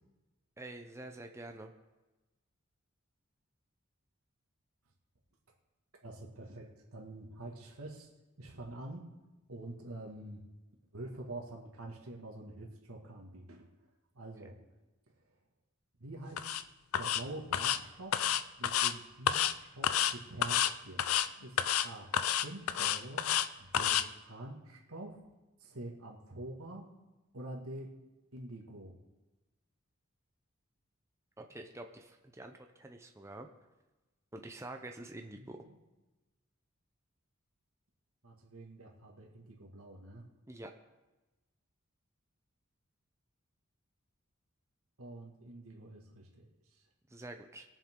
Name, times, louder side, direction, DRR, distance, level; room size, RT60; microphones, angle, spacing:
voice 1, 0.6-1.7 31.4-33.5 34.3-35.6 40.5-40.7 47.1-47.6, right 2 dB, 15° right, 4 dB, 0.6 m, -47 dB
voice 2, 6.0-8.1 8.4-9.1 9.5-10.4 10.9-13.7 14.1-14.6 16.0-16.4 17.0-20.6 20.8-21.0 21.4-23.3 23.6-25.2 25.6-26.8 27.3-27.9 28.3-28.9 35.3-35.8 38.2-40.3 45.0-46.8, right 1 dB, 85° right, 0 dB, 2.1 m, -46 dB
sound 1, 16.4-16.6 16.9-17.2 17.5-17.8 18.1-18.9 19.3-19.5 19.8-20.1 20.4-20.7 21.0-21.3 21.6-21.9 22.1-23.5 23.7-24.0, left 10 dB, 80° left, 0.5 m, -29 dB
21.5 x 7.3 x 3.8 m, 1.1 s
head